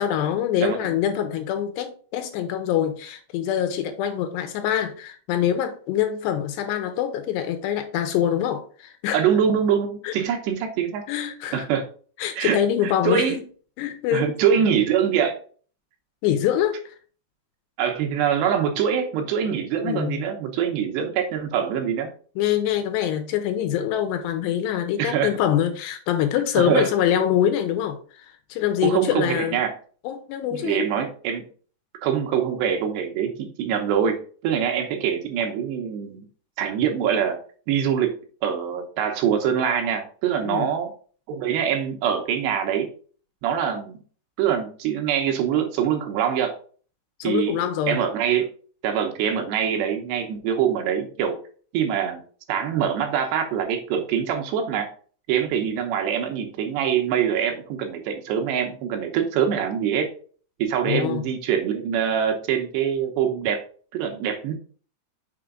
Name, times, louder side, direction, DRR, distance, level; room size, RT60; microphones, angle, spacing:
voice 1, 0.0-9.3 10.0-10.1 11.1-11.7 12.2-13.3 13.8-14.3 16.2-17.0 19.8-20.2 22.4-29.6 30.0-30.9 40.5-40.7 47.2-48.0 60.9-61.2, left 10 dB, 85° left, 2.7 m, -24 dB
voice 2, 0.6-0.9 9.1-11.0 11.5-11.8 12.4-13.4 14.1-15.4 17.8-22.1 25.0-25.4 26.6-26.9 28.8-29.7 30.5-31.5 32.0-36.2 36.6-37.4 37.7-38.1 38.4-40.9 41.3-42.9 43.4-44.0 44.4-46.6 47.2-47.6 47.9-48.5 48.8-51.4 51.7-52.2 52.5-54.9 55.3-60.1 60.6-63.6 63.9-64.5, right 8 dB, 75° right, 2.8 m, -24 dB
6.8 x 5.0 x 3.7 m
omnidirectional pair, 5.2 m